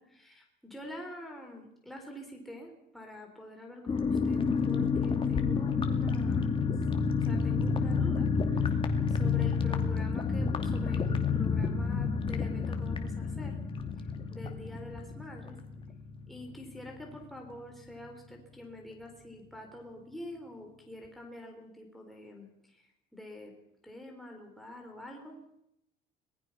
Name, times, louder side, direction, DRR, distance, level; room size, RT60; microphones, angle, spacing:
voice 1, 0.0-6.6 7.2-8.8 9.1-13.6 14.3-15.5 16.3-22.8 23.1-23.5 23.8-25.4, left 1 dB, ahead, 1 dB, 4.0 m, -46 dB
sound 1, 3.9-16.2 16.5-16.6 16.9-17.2, left 5 dB, 30° left, 2.6 m, -29 dB
25.5 x 20.0 x 5.8 m, 0.79 s
cardioid pair, 120°, 19 cm